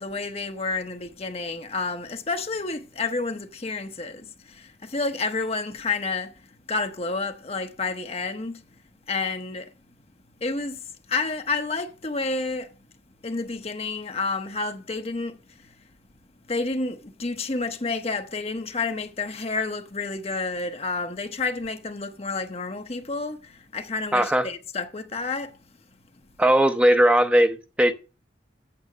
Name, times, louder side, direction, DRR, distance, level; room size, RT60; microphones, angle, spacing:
voice 1, 0.0-4.3 4.8-6.3 6.7-8.6 9.1-9.7 10.4-10.8 11.1-12.7 13.2-15.4 16.5-23.4 23.7-25.5, left 3 dB, 35° left, 0.8 m, -29 dB
voice 2, 24.1-24.5 26.4-27.9, right 1 dB, 5° right, 0.7 m, -19 dB
8.6 x 6.3 x 6.6 m
head